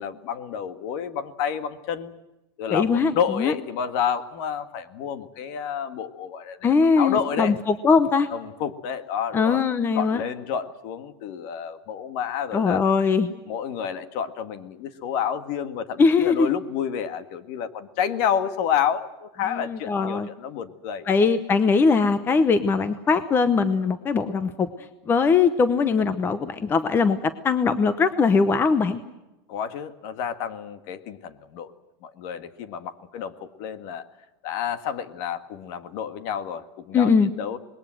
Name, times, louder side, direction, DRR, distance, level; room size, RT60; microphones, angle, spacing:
voice 1, 0.0-2.1 2.6-7.6 8.3-9.6 9.9-12.8 13.5-21.1 29.5-31.7 32.0-34.0 34.4-37.6, left 8 dB, 50° left, 11 dB, 1.8 m, -29 dB
voice 2, 2.7-3.5 6.6-8.3 9.3-10.2 12.5-13.3 16.0-16.5 19.5-20.3 21.1-24.7 25.1-29.0 36.9-37.3, left 5 dB, 15° left, 12 dB, 0.9 m, -21 dB
26.0 x 21.0 x 7.7 m, 0.98 s
supercardioid pair, 165°, 13 cm